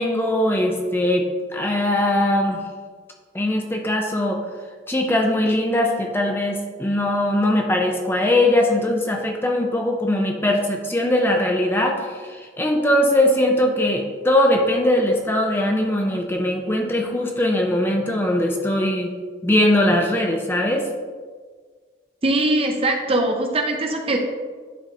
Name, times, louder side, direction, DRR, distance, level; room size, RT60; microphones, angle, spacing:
voice 1, 0.0-2.6 3.3-4.4 4.9-19.1 19.4-20.9, left 1 dB, 10° left, 1 dB, 0.5 m, -20 dB
voice 2, 22.2-24.2, right 2 dB, 30° right, 3 dB, 0.6 m, -21 dB
10.0 x 3.9 x 2.8 m, 1.5 s
head